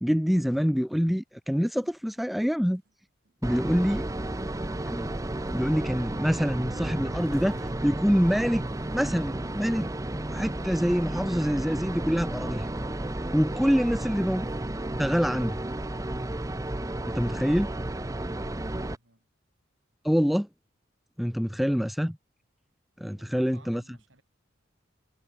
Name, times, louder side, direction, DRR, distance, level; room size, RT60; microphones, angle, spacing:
voice 1, 0.0-2.8 3.4-4.0 4.9-5.1 5.5-7.6 7.8-8.6 8.9-9.9 10.3-12.7 13.3-14.5 15.0-15.6 17.1-17.7 20.0-20.5 21.2-22.2 23.0-23.8, equal, ahead, 0.3 m, -25 dB
sound 1, 1.8-2.1 2.9-3.0 3.3-3.4 4.7-4.8 5.4-7.7 8.2-8.3 9.1-9.2 9.5-9.9 10.5-10.7 12.0-12.8 13.8-14.0, right 2 dB, 50° right, 1.0 m, -47 dB
sound 2, 3.4-19.0, right 1 dB, 15° right, 0.7 m, -33 dB
voice 2, 3.6-4.0 13.7-14.1 18.5-19.3 23.0-24.2, right 2 dB, 70° right, 4.8 m, -56 dB
head